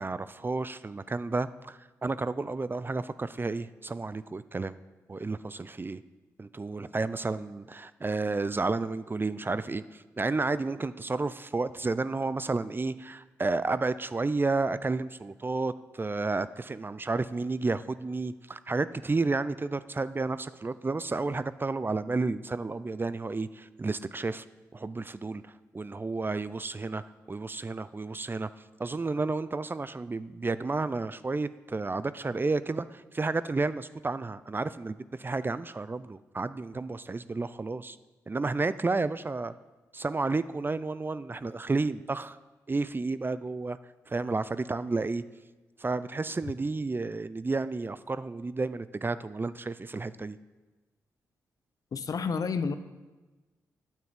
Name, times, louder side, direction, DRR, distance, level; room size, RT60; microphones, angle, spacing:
voice 1, 0.0-4.8 5.1-6.0 6.4-24.4 24.7-25.4 25.7-27.0 27.3-28.5 28.8-38.0 38.3-39.5 39.9-42.4 42.7-43.8 44.1-45.2 45.8-50.4, right 3 dB, 30° right, 15 dB, 0.5 m, -31 dB
voice 2, 51.9-52.8, left 5 dB, 55° left, 11 dB, 0.8 m, -30 dB
9.2 x 7.5 x 8.1 m, 1.2 s
supercardioid pair, 45°, 7 cm